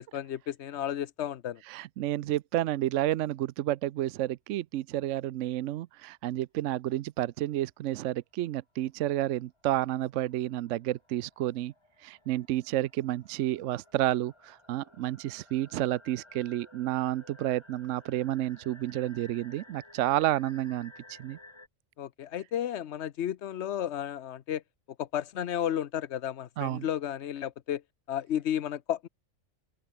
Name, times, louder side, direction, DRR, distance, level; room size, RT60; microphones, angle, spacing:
voice 1, 0.0-1.6 22.0-24.6 25.0-27.8 28.1-29.1, left 10 dB, 60° left, 1.0 m, -33 dB
voice 2, 1.7-11.7 12.0-21.4 26.6-26.9, right 14 dB, 70° right, 0.9 m, -30 dB
sound 1, 8.8-8.9 9.2-21.7, left 2 dB, 20° left, 2.3 m, -55 dB
open air
omnidirectional pair, 1.4 m